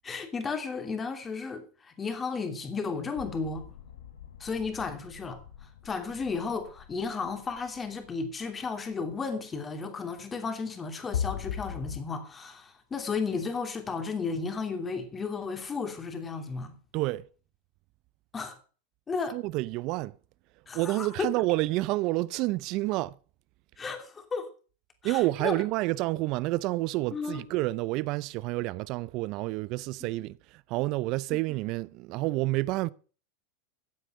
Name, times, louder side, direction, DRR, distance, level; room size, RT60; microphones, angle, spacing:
voice 1, 0.0-3.7 4.4-5.4 5.8-16.8 18.3-18.6 19.1-19.4 20.7-21.3 23.8-24.5 25.0-25.5 27.1-27.4, left 4 dB, 20° left, 2.9 m, -34 dB
sound 1, 3.1-8.6 11.1-12.0, left 9 dB, 90° left, 1.9 m, -39 dB
voice 2, 16.9-17.3 19.3-20.2 20.7-23.2 25.0-32.9, right 19 dB, 50° right, 0.6 m, -29 dB
14.5 x 8.1 x 6.3 m
supercardioid pair, 120°, 0 cm